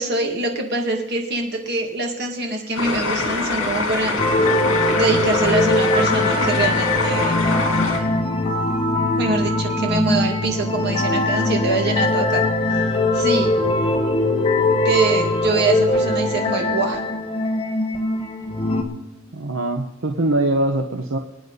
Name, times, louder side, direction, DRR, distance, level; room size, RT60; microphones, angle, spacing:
voice 1, 0.0-4.6 4.9-7.4 9.2-13.5 14.8-17.0, right 2 dB, 55° right, 2 dB, 2.3 m, -24 dB
sound 1, 2.8-8.0, left 2 dB, 70° left, 3.1 m, -24 dB
sound 2, 4.2-18.8, left 2 dB, 30° left, 1.5 m, -21 dB
voice 2, 19.3-21.2, right 1 dB, 75° right, 4 dB, 1.0 m, -22 dB
25.5 x 9.3 x 4.1 m, 1.0 s
head